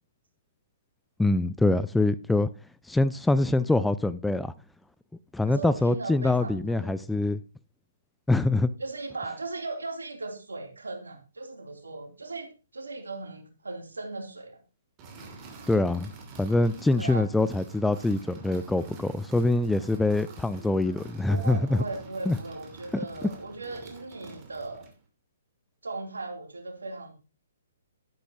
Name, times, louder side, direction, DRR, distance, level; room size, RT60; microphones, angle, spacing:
voice 1, 1.2-2.5 2.9-4.5 5.3-7.4 8.3-8.7 15.7-16.1 16.4-21.8 22.3-22.4, left 2 dB, 5° left, 0.4 m, -24 dB
voice 2, 5.4-7.0 8.8-14.6 17.0-17.3 21.3-24.9 25.8-27.1, right 3 dB, 75° right, 3.1 m, -38 dB
sound 1, 15.0-25.0, right 3 dB, 25° right, 2.7 m, -47 dB
11.5 x 11.0 x 2.9 m
figure-of-eight pair, 125°, 0 cm